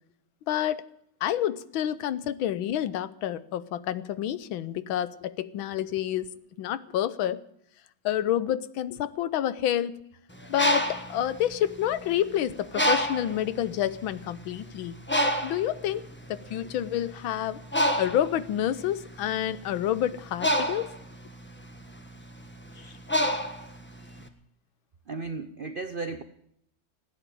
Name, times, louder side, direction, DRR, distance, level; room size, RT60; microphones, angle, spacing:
voice 1, 0.5-0.8 1.2-6.3 6.6-7.4 8.0-10.0 10.5-15.0 15.4-17.6 18.0-20.9, left 11 dB, 90° left, 16 dB, 1.6 m, -28 dB
Bird, 10.3-12.2 12.7-13.4 14.1-14.2 14.5-24.2, equal, 5° left, 1.1 m, -28 dB
voice 2, 25.1-26.2, right 3 dB, 80° right, 10 dB, 0.4 m, -36 dB
16.0 x 9.5 x 9.1 m, 0.72 s
omnidirectional pair, 2.1 m